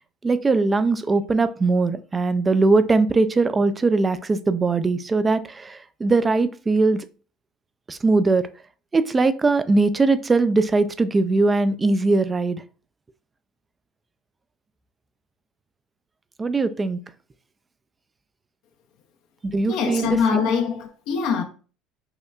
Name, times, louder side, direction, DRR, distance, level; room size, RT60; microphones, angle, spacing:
voice 1, 0.2-7.1 7.9-8.5 8.9-12.6 16.4-17.0 19.5-20.5, right 3 dB, 20° right, 0.3 m, -20 dB
voice 2, 19.7-21.4, left 6 dB, 70° left, 0.6 m, -23 dB
5.5 x 2.2 x 2.4 m
supercardioid pair, 95°, 0 cm